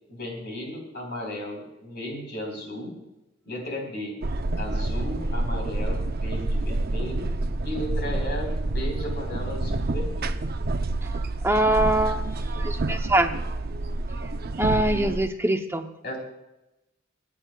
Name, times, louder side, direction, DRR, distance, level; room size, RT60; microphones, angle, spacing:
voice 1, 0.1-3.0 3.4-4.2 4.6-7.3 7.6-10.3 16.0-16.2, left 1 dB, 55° left, 2 dB, 4.1 m, -35 dB
sound 1, 4.2-15.3, right 2 dB, 50° right, 0.6 m, -28 dB
voice 2, 11.4-12.2 12.6-13.3 14.6-15.9, right 1 dB, 15° right, 5 dB, 0.7 m, -23 dB
27.5 x 9.9 x 2.3 m, 0.94 s
head